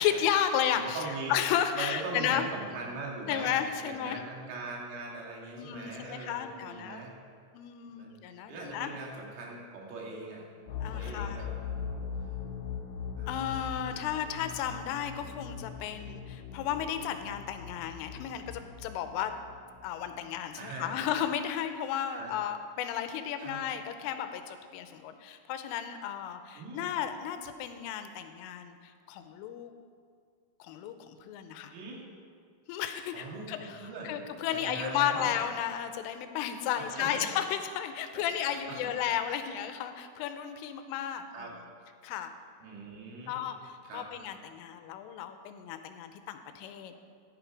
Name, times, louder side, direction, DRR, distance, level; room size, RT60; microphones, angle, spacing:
voice 1, 0.0-1.0 1.3-2.5 3.3-4.2 5.6-7.0 7.5-8.9 10.8-11.4 13.3-19.3 19.8-29.7 30.6-31.7 32.7-41.3 42.0-42.3 43.3-47.0, left 9 dB, 90° left, 8 dB, 3.3 m, -33 dB
voice 2, 0.7-1.4 1.7-3.5 3.8-7.2 7.9-8.1 8.5-10.4 10.8-11.9 13.2-13.6 20.6-21.0 22.1-22.4 23.4-23.6 26.5-26.9 31.7-32.0 33.1-34.1 34.5-35.3 36.8-37.3 38.2-38.3 38.7-38.9 41.3-41.5 42.6-43.5 43.8-44.1, right 3 dB, 80° right, -2 dB, 4.8 m, -41 dB
sound 1, 10.7-20.5, left 7 dB, 65° left, 3.0 m, -41 dB
14.5 x 11.0 x 4.8 m, 2.1 s
omnidirectional pair, 5.7 m